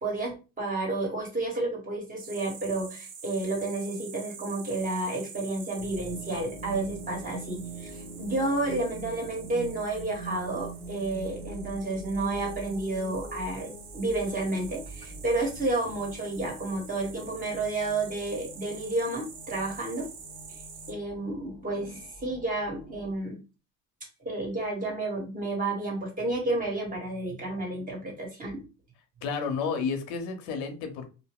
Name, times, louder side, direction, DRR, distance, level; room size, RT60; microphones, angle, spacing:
voice 1, 0.0-20.1 20.9-23.4 24.2-28.6, right 2 dB, 20° right, -1 dB, 1.4 m, -31 dB
sound 1, 2.2-20.9, right 6 dB, 60° right, 0.8 m, -47 dB
sound 2, 5.8-23.1, right 2 dB, 15° left, 1.0 m, -44 dB
voice 2, 29.2-31.1, left 5 dB, 80° left, 6 dB, 0.9 m, -31 dB
2.5 x 2.1 x 3.6 m, 0.32 s
cardioid pair, 105°, 37 cm